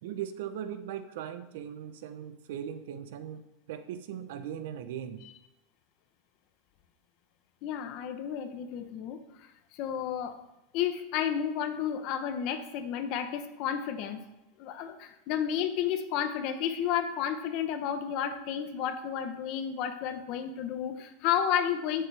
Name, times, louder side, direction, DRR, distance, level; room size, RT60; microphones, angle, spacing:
voice 1, 0.0-5.2, right 9 dB, 70° right, 11 dB, 0.9 m, -39 dB
voice 2, 7.6-9.2 9.7-10.4 10.7-14.2 14.6-22.1, left 9 dB, 45° left, 8 dB, 1.0 m, -31 dB
16.5 x 7.0 x 3.4 m, 0.96 s
supercardioid pair, 160°, 0 cm